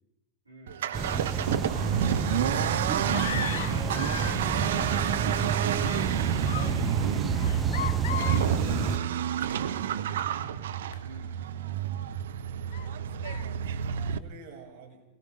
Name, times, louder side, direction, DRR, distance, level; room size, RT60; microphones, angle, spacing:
voice 1, 0.4-0.8 3.7-4.8 6.5-6.8 7.7-9.1 11.0-11.3, right 2 dB, 85° right, -2 dB, 4.4 m, -44 dB
Accelerating revving vroom, 0.7-14.2, right 9 dB, 60° right, 1.1 m, -30 dB
sound 1, 0.9-9.0, right 6 dB, 20° right, 1.0 m, -29 dB
voice 2, 1.7-3.0 6.1-6.4 14.0-15.0, right 5 dB, 45° right, 0 dB, 6.8 m, -50 dB
sound 2, 3.0-4.4 4.7-5.4 5.6-6.1 6.5-6.8 7.3-8.5 9.5-9.6 10.2-10.3 10.9-11.0 11.7-11.8 12.7-12.9 13.2-13.4, left 9 dB, 55° left, 1.3 m, -37 dB
29.0 x 21.5 x 5.4 m, 0.88 s
figure-of-eight pair, 90°, 0 cm